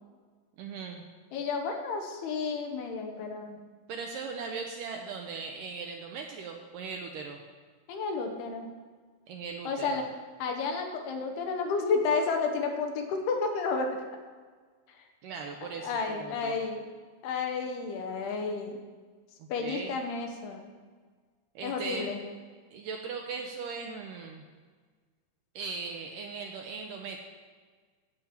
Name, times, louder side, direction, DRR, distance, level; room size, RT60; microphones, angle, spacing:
voice 1, 0.6-1.0 3.9-7.4 9.3-10.0 15.2-16.6 19.4-20.0 21.6-22.1 22.7-24.4 25.6-27.2, right 5 dB, 80° right, 2 dB, 2.0 m, -39 dB
voice 2, 1.3-3.6 7.9-8.7 9.6-10.1 10.4-14.0 15.6-16.9 17.2-18.8 19.5-20.6 21.6-22.2, left 4 dB, 80° left, 3 dB, 3.0 m, -31 dB
11.5 x 8.7 x 4.4 m, 1.5 s
omnidirectional pair, 4.6 m